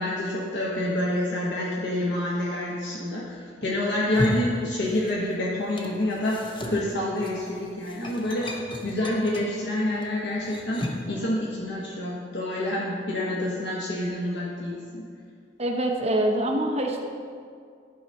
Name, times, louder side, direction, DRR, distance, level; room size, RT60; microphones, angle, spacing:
voice 1, 0.0-8.5 8.8-15.1, left 1 dB, 75° left, -5 dB, 1.2 m, -28 dB
sound 1, 3.9-5.3 5.6-11.2, left 1 dB, 25° left, 0.7 m, -35 dB
voice 2, 15.6-17.0, right 1 dB, 35° right, 2 dB, 0.8 m, -25 dB
11.5 x 4.0 x 5.4 m, 2.2 s
head